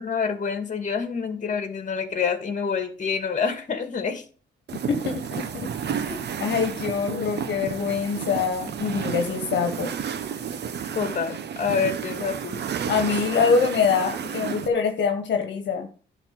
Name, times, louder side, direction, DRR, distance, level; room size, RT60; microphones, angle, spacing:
voice 1, 0.0-4.2 10.9-12.7, left 6 dB, 40° left, 6 dB, 2.2 m, -27 dB
voice 2, 4.7-5.7 6.0-9.9 12.9-15.9, left 5 dB, 65° left, 4 dB, 1.6 m, -24 dB
sound 1, 4.7-14.7, right 7 dB, 60° right, 1.0 m, -31 dB
11.0 x 4.2 x 7.7 m, 0.41 s
cardioid pair, 90°, 20 cm